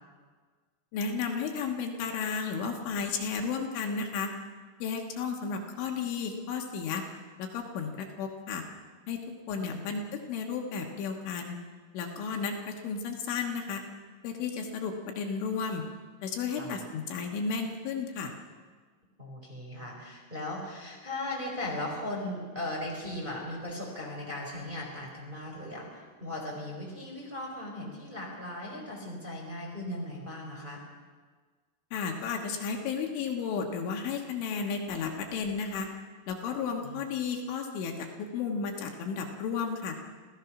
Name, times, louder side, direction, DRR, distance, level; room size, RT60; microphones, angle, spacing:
voice 1, 0.9-4.3 4.8-7.0 7.4-8.6 9.1-9.2 9.5-11.6 11.9-13.8 14.2-15.9 16.2-18.3 31.9-35.9 36.3-40.0, left 5 dB, 75° left, 2 dB, 3.7 m, -33 dB
voice 2, 9.6-10.0 16.6-16.8 19.2-30.8 36.8-37.0, left 1 dB, 10° right, -2 dB, 3.7 m, -38 dB
27.0 x 16.5 x 6.0 m, 1.5 s
omnidirectional pair, 5.8 m